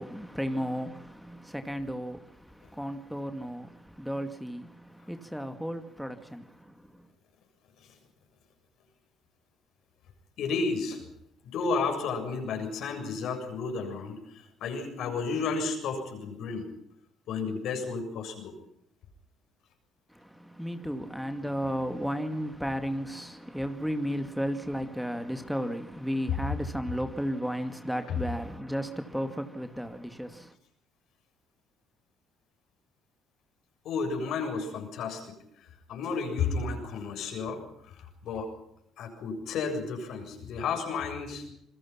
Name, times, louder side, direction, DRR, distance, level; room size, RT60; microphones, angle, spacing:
voice 1, 0.0-7.1 20.1-30.6, equal, ahead, 2.2 m, -34 dB
voice 2, 10.4-11.0 11.4-16.7 17.3-18.5 28.1-28.2 33.8-35.2 35.6-38.5 39.0-41.4, left 4 dB, 70° left, 7.2 m, -32 dB
27.5 x 21.0 x 5.9 m
hypercardioid pair, 60°, 0 cm